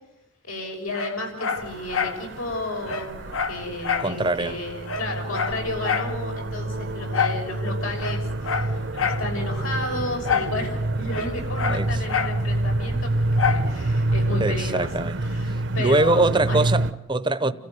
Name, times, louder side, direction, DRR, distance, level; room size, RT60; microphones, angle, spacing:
voice 1, 0.5-8.7 9.0-14.9 15.3-16.7 17.4-17.5, left 2 dB, 90° left, 6.5 m, -33 dB
Dog, 0.9-2.2 2.5-2.6 2.9-4.1 4.5-4.6 4.8-6.1 7.1-7.4 7.9-9.3 10.2-10.6 10.8-12.4 13.4-13.7 14.2-14.3, left 6 dB, 70° left, 1.3 m, -27 dB
sound 1, 1.6-16.9, right 1 dB, 55° right, 0.9 m, -27 dB
voice 2, 4.0-4.6 11.7-12.0 14.4-15.2 15.8-17.5, right 2 dB, 20° right, 0.8 m, -23 dB
29.5 x 14.5 x 9.7 m
head